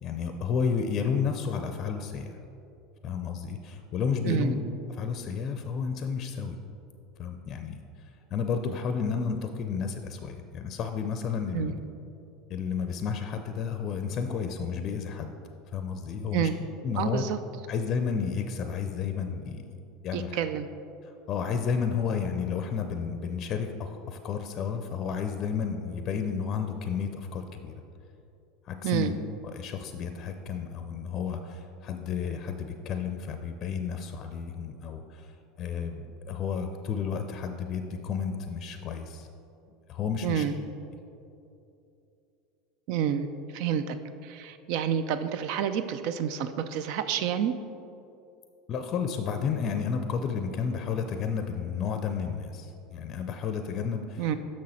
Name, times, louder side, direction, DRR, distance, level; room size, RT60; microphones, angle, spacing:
voice 1, 0.0-2.4 3.0-4.6 4.9-6.6 7.2-7.8 8.3-11.8 12.5-15.3 15.7-16.5 16.8-17.2 17.7-19.7 20.0-20.4 21.0-27.7 28.6-29.1 29.4-39.3 39.9-40.5 48.7-54.3, left 6 dB, 45° left, 7 dB, 0.5 m, -31 dB
voice 2, 4.2-4.5 11.5-11.7 16.3-16.6 17.0-17.4 20.1-20.7 28.8-29.1 40.2-40.5 42.9-43.3 43.5-44.0 44.2-47.5 54.2-54.4, right 9 dB, 60° right, 11 dB, 0.3 m, -28 dB
6.2 x 6.1 x 4.3 m, 2.7 s
hypercardioid pair, 85°, 0 cm